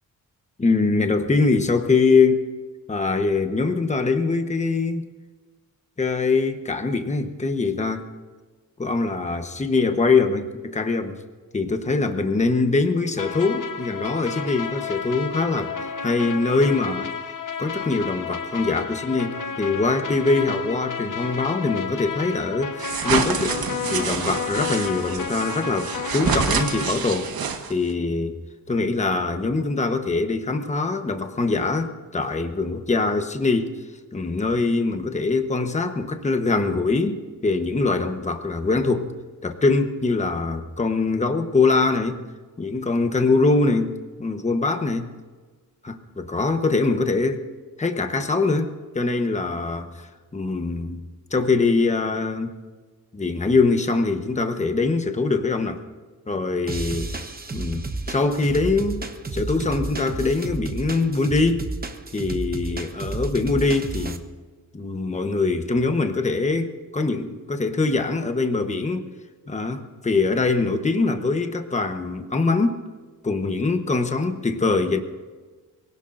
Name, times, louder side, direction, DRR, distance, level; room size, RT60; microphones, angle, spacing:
voice 1, 0.6-2.5 2.9-5.1 6.0-8.0 8.8-11.2 11.5-15.7 16.0-17.1 17.6-27.3 27.7-28.4 28.7-33.8 34.1-39.1 39.4-42.2 42.6-45.1 45.8-47.5 47.8-51.0 51.3-52.5 53.1-55.8 56.3-57.1 57.5-59.0 59.3-61.7 62.1-64.3 64.7-69.1 69.5-72.8 73.2-75.0, left 3 dB, 20° left, 7 dB, 1.1 m, -23 dB
sound 1, 13.2-26.9, left 6 dB, 55° left, 1.3 m, -32 dB
sound 2, 22.8-27.9, right 6 dB, 70° right, 1.2 m, -27 dB
sound 3, 56.7-64.2, right 3 dB, 25° right, 1.0 m, -32 dB
23.5 x 17.5 x 2.6 m, 1.4 s
wide cardioid pair, 135°, 37 cm